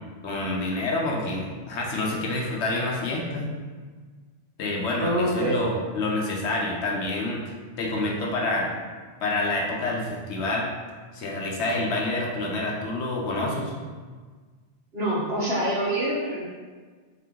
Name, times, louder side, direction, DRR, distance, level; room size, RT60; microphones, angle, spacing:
voice 1, 0.2-3.5 4.6-8.7 9.2-10.7 11.1-13.7, left 2 dB, 75° left, -2 dB, 1.0 m, -28 dB
voice 2, 5.0-5.6 14.9-16.4, right 1 dB, 60° right, -6 dB, 1.3 m, -25 dB
4.1 x 2.8 x 3.6 m, 1.5 s
omnidirectional pair, 1.2 m